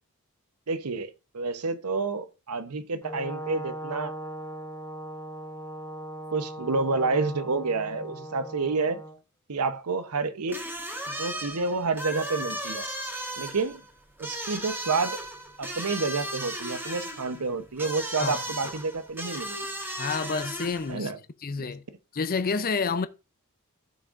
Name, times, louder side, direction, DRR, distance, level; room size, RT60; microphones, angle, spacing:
voice 1, 0.7-4.1 6.3-9.0 9.5-10.6 11.1-12.9 13.4-13.8 14.2-15.2 15.6-19.7 20.9-21.2, right 4 dB, 85° right, 0.9 m, -29 dB
Brass instrument, 3.0-9.2, right 1 dB, 15° left, 1.1 m, -39 dB
sound 1, 10.5-21.0, right 1 dB, 10° right, 1.5 m, -36 dB
voice 2, 20.0-21.1 21.4-21.8 22.1-23.1, left 4 dB, 40° left, 0.5 m, -29 dB
15.0 x 6.1 x 2.5 m
head